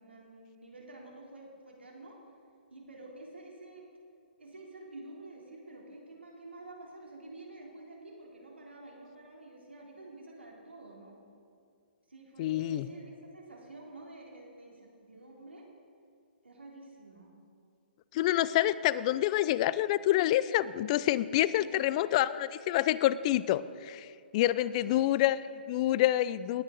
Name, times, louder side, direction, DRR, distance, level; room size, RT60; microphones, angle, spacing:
voice 1, 0.0-2.2 2.7-3.9 4.4-11.2 12.1-15.7 16.4-17.3 21.5-22.1 24.6-25.2 25.6-25.7, right 2 dB, 90° right, -2 dB, 3.2 m, -49 dB
voice 2, 12.4-12.9 18.1-24.1 24.3-25.4 25.7-26.6, left 14 dB, 40° left, 17 dB, 0.4 m, -27 dB
18.5 x 9.0 x 3.9 m, 2.3 s
hypercardioid pair, 130°, 6 cm